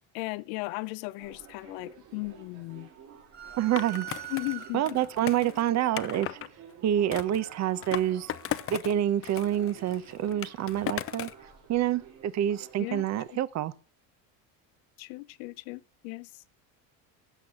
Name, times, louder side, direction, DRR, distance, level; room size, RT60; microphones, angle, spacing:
voice 1, 0.1-2.9 4.3-5.0 12.8-13.4 15.0-16.4, left 23 dB, 75° left, 0.7 m, -37 dB
sound 1, 1.2-13.4, right 8 dB, 65° right, 4.8 m, -52 dB
sound 2, 3.3-5.2, right 13 dB, 25° right, 1.9 m, -42 dB
voice 2, 3.6-4.1 4.7-6.4 6.8-8.3 8.7-11.3 11.7-13.7, right 11 dB, 40° right, 0.8 m, -27 dB
Skateboard, 3.8-6.5 7.1-9.0 9.2-11.4, left 11 dB, 35° left, 0.6 m, -37 dB
16.0 x 6.2 x 5.1 m
supercardioid pair, 95°, 41 cm